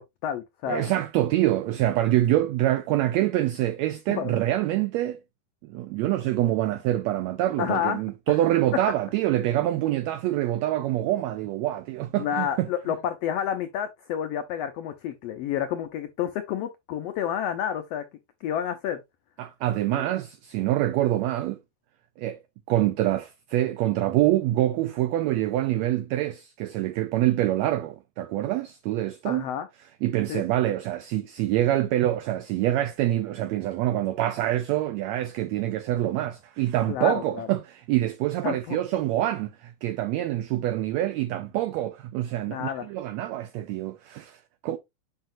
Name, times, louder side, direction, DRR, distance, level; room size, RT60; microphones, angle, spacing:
voice 1, 0.0-0.9 4.1-4.3 7.6-8.0 12.2-18.0 18.4-19.0 19.9-20.1 29.2-29.7 30.3-30.4 36.9-37.5 38.4-38.8 42.5-42.9, left 9 dB, 85° left, 1.4 m, -30 dB
voice 2, 0.7-5.2 5.6-12.7 19.4-21.6 22.2-22.4 22.7-29.5 30.0-44.8, right 14 dB, 90° right, 1.5 m, -26 dB
7.7 x 5.6 x 2.5 m
omnidirectional pair, 3.6 m